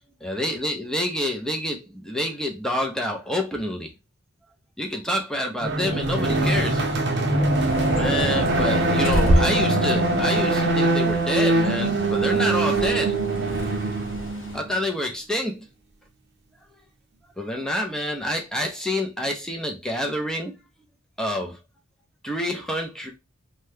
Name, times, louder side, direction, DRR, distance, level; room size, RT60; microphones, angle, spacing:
voice 1, 0.2-3.9 4.8-6.8 7.9-13.1 14.5-15.7 17.4-20.6 21.2-21.6 22.2-23.1, left 1 dB, 5° left, 0.5 m, -27 dB
sound 1, 5.6-14.8, right 2 dB, 55° right, 0.7 m, -22 dB
Bird, 7.5-14.6, equal, 70° left, 1.0 m, -29 dB
2.7 x 2.2 x 3.3 m
head